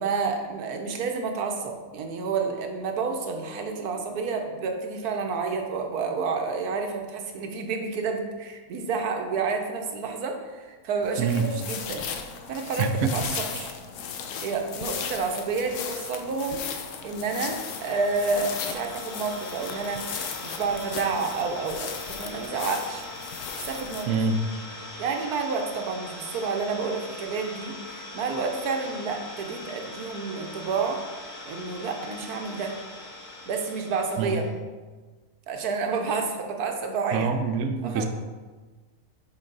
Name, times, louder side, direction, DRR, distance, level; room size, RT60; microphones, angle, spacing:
voice 1, 0.0-12.0 12.5-13.7 14.4-23.1 23.6-24.1 25.0-31.0 31.5-32.7 33.5-34.4 35.5-37.3 37.8-38.1, right 4 dB, 85° right, 3 dB, 1.3 m, -30 dB
sound 1, 11.0-24.0, left 7 dB, 65° left, 0.8 m, -36 dB
voice 2, 12.8-13.1 24.1-24.4 34.2-34.4 37.1-38.1, right 5 dB, 70° right, 6 dB, 0.8 m, -25 dB
Idling, 16.8-34.5, left 2 dB, 90° left, 1.4 m, -41 dB
6.1 x 4.5 x 3.9 m, 1.3 s
omnidirectional pair, 1.6 m